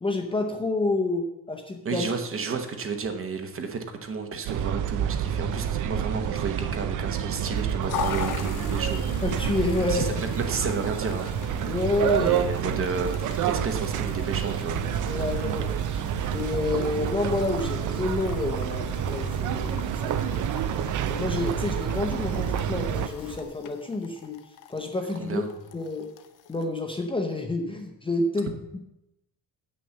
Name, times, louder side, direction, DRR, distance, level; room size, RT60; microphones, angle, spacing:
voice 1, 0.0-2.1 9.2-10.1 11.7-12.3 15.1-20.4 21.1-24.4 24.7-25.4 25.7-26.1 26.5-28.8, left 2 dB, 15° left, 2 dB, 0.7 m, -29 dB
voice 2, 1.8-9.0 9.8-11.8 12.2-14.8 15.2-15.6 25.2-25.5, right 4 dB, 35° right, 6 dB, 1.0 m, -32 dB
sound 1, 4.5-23.1, right 9 dB, 50° right, 0.5 m, -28 dB
Piano / Organ, 7.4-23.4, left 1 dB, 15° right, 1.5 m, -46 dB
sound 2, 7.9-26.7, left 9 dB, 55° left, 0.8 m, -41 dB
8.5 x 6.2 x 7.0 m, 0.88 s
cardioid pair, 175°, 39 cm